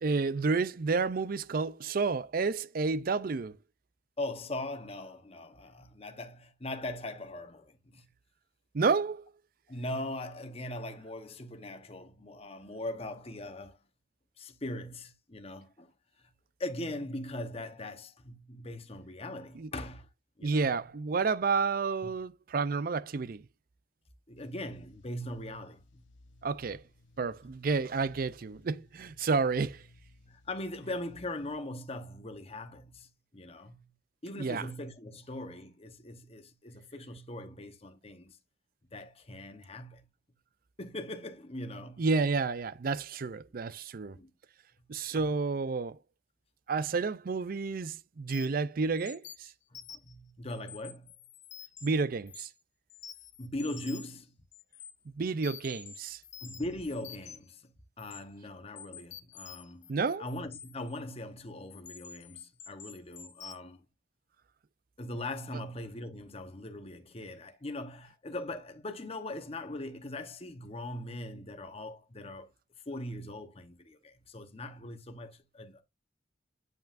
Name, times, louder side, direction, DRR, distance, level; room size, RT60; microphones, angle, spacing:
voice 1, 0.0-3.6 8.7-9.3 19.6-19.7 20.4-23.4 26.4-26.8 27.2-29.8 34.4-34.7 42.0-44.2 44.9-46.0 46.7-49.5 51.8-52.5 55.2-56.2 59.9-60.2, right 4 dB, 50° right, 0.4 m, -30 dB
voice 2, 4.2-8.1 9.7-13.8 14.4-15.9 16.6-20.1 20.4-20.8 22.0-22.2 24.3-26.0 30.3-33.9 34.2-38.4 38.9-40.0 40.8-42.0 44.1-44.3 45.1-45.3 49.7-51.1 53.4-54.3 56.4-57.7 58.0-59.9 60.2-63.8 65.0-72.5 72.9-75.8, left 1 dB, 35° left, 1.0 m, -40 dB
sound 1, 24.3-31.6, left 1 dB, 85° left, 0.9 m, -60 dB
sound 2, 48.3-48.6 49.0-50.1 50.5-51.9 52.3-52.6 52.9-54.2 54.5-54.9 55.4-57.5 58.0-58.2 58.8-61.0 61.7-63.6, left 8 dB, 70° left, 1.1 m, -48 dB
9.1 x 5.6 x 2.5 m
head